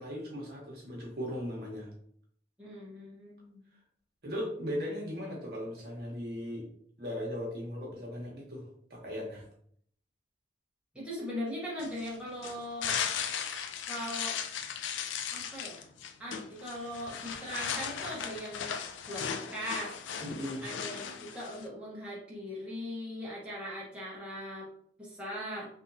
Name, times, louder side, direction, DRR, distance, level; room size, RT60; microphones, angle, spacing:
voice 1, 0.0-1.9 4.2-6.7 7.0-9.5 20.2-20.6, equal, 55° right, -2 dB, 1.0 m, -38 dB
voice 2, 2.6-3.6 10.9-13.0 13.9-14.4 15.3-15.9 16.2-18.8 19.1-20.0 20.6-24.7 25.0-25.7, equal, 5° right, -7 dB, 0.9 m, -40 dB
sound 1, 11.8-21.7, left 7 dB, 80° left, 0.4 m, -37 dB
3.5 x 2.8 x 2.6 m, 0.63 s
head